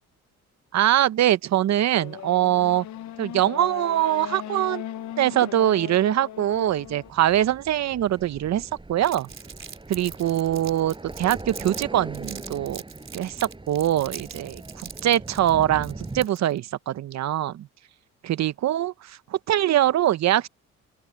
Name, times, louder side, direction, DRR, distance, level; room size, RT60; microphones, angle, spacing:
voice 1, 0.7-2.8 3.2-4.8 5.2-9.3 9.9-12.8 13.1-17.7 18.2-20.5, right 12 dB, 60° right, 0.8 m, -23 dB
Race car auto racing / Accelerating revving vroom, 1.9-7.1, left 11 dB, 70° left, 0.8 m, -38 dB
sound 1, 6.4-16.2, right 2 dB, 15° right, 5.5 m, -41 dB
Crumpling crinkling, 9.0-11.8 12.1-16.6, right 6 dB, 40° right, 3.7 m, -41 dB
open air
cardioid pair, 90°, 30 cm